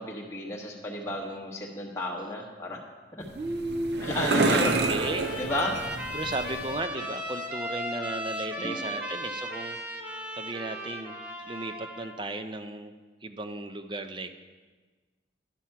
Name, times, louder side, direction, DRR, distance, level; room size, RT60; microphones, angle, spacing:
voice 1, 0.0-2.8 3.1-3.2 4.0-4.7 5.4-5.8 8.6-8.9, left 1 dB, 15° left, -2 dB, 1.0 m, -32 dB
sound 1, 3.2-6.8, right 3 dB, 60° right, 0.7 m, -29 dB
voice 2, 3.3-4.0 4.3-5.3 6.1-9.8 10.4-11.1 11.5-12.9 13.2-14.4, right 2 dB, 25° right, 9 dB, 0.4 m, -35 dB
Trumpet, 4.0-12.2, equal, 10° right, 0.9 m, -37 dB
11.5 x 5.9 x 5.7 m, 1.4 s
head